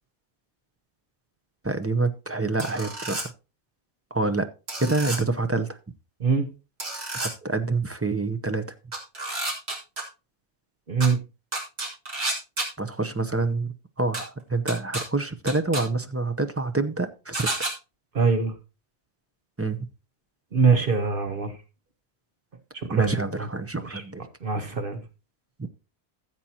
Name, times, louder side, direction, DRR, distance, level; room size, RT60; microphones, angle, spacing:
voice 1, 1.6-3.3 4.1-4.5 4.8-5.8 7.1-8.6 12.8-17.5 19.6-19.8 22.9-24.3 25.6-25.7, right 3 dB, 15° right, 8 dB, 0.5 m, -27 dB
sound 1, 2.6-3.2 4.7-5.2 6.8-7.3 8.9-10.0 11.0-11.1 11.5-12.7 14.1-14.2 14.7-15.0 15.5-15.8 17.3-17.7, right 2 dB, 70° right, 3.0 m, -30 dB
voice 2, 10.9-11.2 18.1-18.5 20.5-21.5 22.8-23.1 23.9-24.0 24.4-25.0, right 5 dB, 55° right, 7 dB, 1.2 m, -23 dB
15.0 x 7.6 x 2.8 m, 0.29 s
omnidirectional pair, 1.1 m